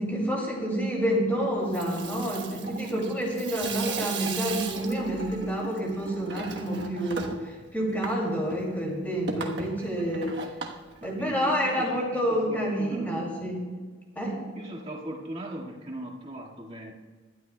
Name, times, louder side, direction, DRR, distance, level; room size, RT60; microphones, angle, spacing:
voice 1, 0.0-10.4 11.0-13.7 14.2-14.4, equal, 10° left, -3 dB, 2.5 m, -28 dB
Water tap faucet / Sink (filling or washing), 1.5-11.7, right 4 dB, 70° right, 1.2 m, -38 dB
voice 2, 11.0-13.4 14.6-16.9, right 1 dB, 35° right, -3 dB, 1.9 m, -39 dB
19.5 x 12.5 x 2.3 m, 1.5 s
head